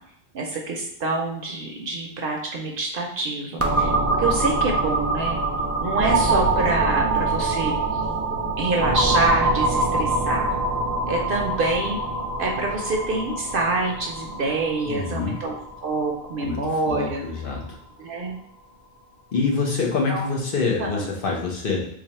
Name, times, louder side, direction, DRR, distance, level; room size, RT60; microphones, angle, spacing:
voice 1, 0.3-5.4 5.8-7.7 8.6-10.5 11.1-12.0 12.4-15.5 15.8-17.2 18.0-18.4 20.1-20.3 20.8-21.1, right 3 dB, 65° right, 1 dB, 0.7 m, -26 dB
sound 1, 3.6-17.2, right 2 dB, 25° right, 0.3 m, -24 dB
voice 2, 14.8-15.4 16.4-17.7 19.3-21.9, left 4 dB, 60° left, -1 dB, 1.0 m, -26 dB
3.2 x 2.4 x 4.1 m, 0.71 s
omnidirectional pair, 1.0 m